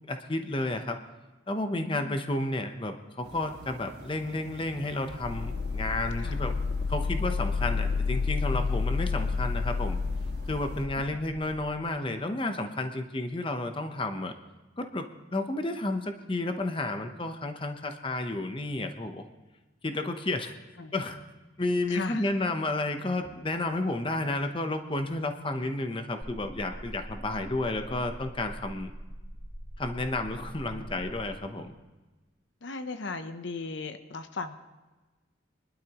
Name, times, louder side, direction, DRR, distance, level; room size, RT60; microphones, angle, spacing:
voice 1, 0.1-1.0 1.5-6.6 6.9-10.0 10.5-14.3 14.8-19.3 19.8-20.5 20.9-21.2 21.6-28.9 29.8-31.7, left 2 dB, 25° left, 7 dB, 0.8 m, -31 dB
voice 2, 1.7-2.2 6.2-6.4 11.0-11.2 20.8-20.9 21.9-22.3 27.3-27.4 32.6-34.6, left 3 dB, 70° left, 9 dB, 0.8 m, -37 dB
sound 1, 3.2-10.9, right 1 dB, 55° right, 1.5 m, -48 dB
sound 2, 5.1-11.7, left 4 dB, 55° left, 0.3 m, -30 dB
sound 3, 26.2-31.2, equal, 20° right, 1.3 m, -43 dB
23.0 x 12.0 x 3.0 m, 1.2 s
head